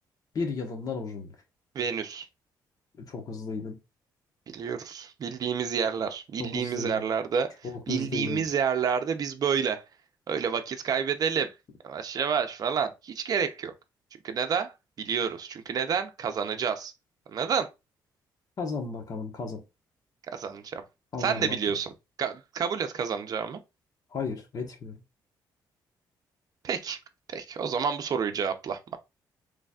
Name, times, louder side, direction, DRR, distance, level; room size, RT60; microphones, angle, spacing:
voice 1, 0.3-1.3 3.0-3.8 6.4-7.1 7.6-8.4 18.6-19.6 21.1-21.7 24.1-25.0, left 4 dB, 50° left, 1.2 m, -34 dB
voice 2, 1.7-2.3 4.5-7.5 7.9-9.8 10.3-11.5 11.8-13.7 14.2-14.7 15.0-16.9 17.3-17.7 20.3-20.8 21.2-21.9 22.2-23.6 26.6-27.0 27.3-29.0, right 7 dB, 50° right, 0.6 m, -29 dB
4.0 x 3.2 x 2.3 m
cardioid pair, 110°, 8 cm